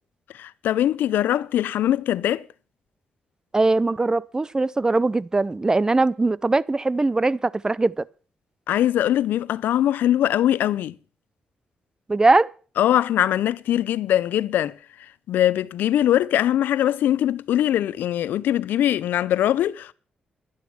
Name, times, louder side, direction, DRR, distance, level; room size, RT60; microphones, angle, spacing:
voice 1, 0.3-2.4 8.7-10.9 12.8-14.7 15.3-19.9, left 12 dB, 90° left, 0.5 m, -21 dB
voice 2, 3.5-8.0 12.1-12.5, right 3 dB, 20° right, 0.5 m, -21 dB
11.5 x 11.5 x 6.0 m
cardioid pair, 75°, 3 cm